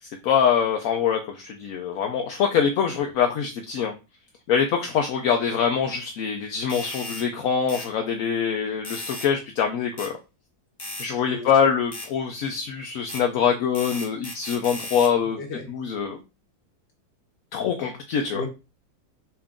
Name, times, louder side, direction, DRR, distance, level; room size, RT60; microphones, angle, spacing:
voice 1, 0.0-3.9 4.5-10.1 11.0-15.4 15.7-16.2 17.5-18.4, left 7 dB, 70° left, 3 dB, 1.0 m, -24 dB
sound 1, 6.7-7.3 7.7-7.9 8.8-9.3 10.0-10.1 10.8-11.1 11.9-12.1 13.1-13.2 13.7-15.1, left 2 dB, 25° left, 0.6 m, -36 dB
voice 2, 11.2-11.7 15.2-15.7 18.3-18.5, left 3 dB, 50° left, 4 dB, 1.2 m, -36 dB
5.7 x 2.5 x 3.6 m, 0.28 s
omnidirectional pair, 1.7 m